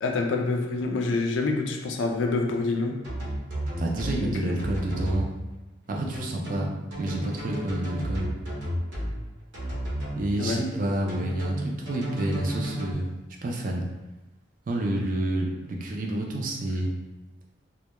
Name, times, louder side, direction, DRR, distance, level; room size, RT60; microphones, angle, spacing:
voice 1, 0.0-3.0 4.4-4.5 10.4-10.6, left 3 dB, 85° left, 2 dB, 0.4 m, -26 dB
sound 1, 3.0-4.2 4.6-5.2 6.1-9.1 9.5-10.2 11.1-12.9, right 1 dB, 75° right, 0.7 m, -32 dB
voice 2, 3.8-5.3 5.9-6.7 7.0-8.3 10.1-13.1 13.4-13.8 14.7-16.9, right 1 dB, 45° right, 0 dB, 0.4 m, -29 dB
2.1 x 2.1 x 2.9 m, 1.0 s
head